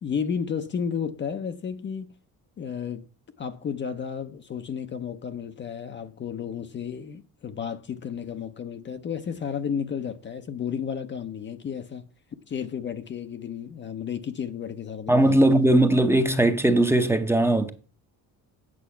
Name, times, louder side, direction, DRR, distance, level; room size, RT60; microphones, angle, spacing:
voice 1, 0.0-2.1 2.6-3.0 3.4-12.0 12.5-15.7, left 7 dB, 30° left, 0.6 m, -32 dB
voice 2, 15.1-17.7, right 1 dB, 5° right, 0.7 m, -19 dB
8.5 x 6.9 x 5.6 m
cardioid pair, 145°, 37 cm